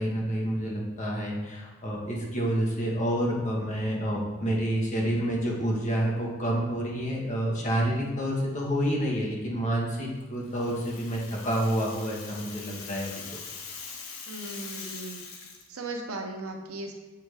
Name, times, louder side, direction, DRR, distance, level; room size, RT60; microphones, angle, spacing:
voice 1, 0.0-13.1, right 1 dB, 35° left, -3 dB, 1.3 m, -28 dB
Rattle (instrument), 10.4-15.7, left 5 dB, 85° left, 1.0 m, -42 dB
voice 2, 14.3-15.2 15.7-17.0, right 2 dB, 90° right, 3 dB, 0.8 m, -37 dB
7.0 x 3.6 x 4.8 m, 1.2 s
head